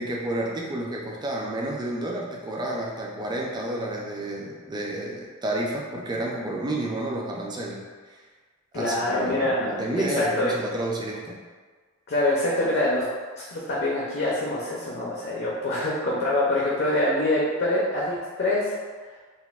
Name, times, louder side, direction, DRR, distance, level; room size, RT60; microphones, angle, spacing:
voice 1, 0.0-8.2 8.7-11.4, right 1 dB, 20° right, -1 dB, 0.3 m, -30 dB
voice 2, 8.7-9.8 10.2-10.5 12.1-13.1 13.4-18.7, left 1 dB, 55° left, -5 dB, 0.5 m, -25 dB
4.0 x 2.0 x 2.3 m, 1.5 s
head